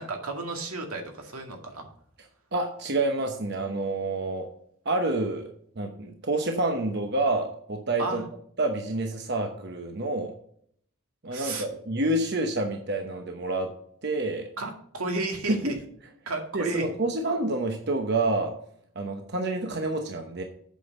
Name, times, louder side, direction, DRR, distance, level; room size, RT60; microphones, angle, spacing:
voice 1, 0.0-1.8 8.0-8.2 11.3-11.7 14.6-15.8 16.3-16.9, right 2 dB, 85° right, 3 dB, 2.1 m, -32 dB
voice 2, 2.5-4.5 4.8-5.5 5.8-8.2 8.6-10.3 11.2-13.7 14.0-14.5 15.5-15.8 16.5-18.5 19.0-20.4, right 2 dB, 50° right, 4 dB, 0.9 m, -28 dB
8.3 x 6.1 x 5.3 m, 0.64 s
head